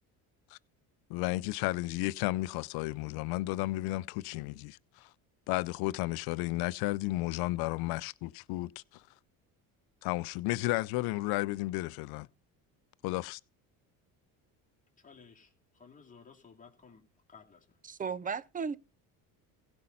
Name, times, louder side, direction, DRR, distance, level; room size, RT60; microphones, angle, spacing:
voice 1, 1.1-5.1 5.5-9.0 10.0-12.3 13.0-13.4, left 19 dB, 80° left, 0.6 m, -33 dB
voice 2, 15.0-17.0 17.3-17.7, left 5 dB, 20° left, 2.6 m, -56 dB
voice 3, 17.8-18.8, right 6 dB, 25° right, 0.5 m, -35 dB
16.0 x 5.3 x 5.6 m
cardioid pair, 110°, 37 cm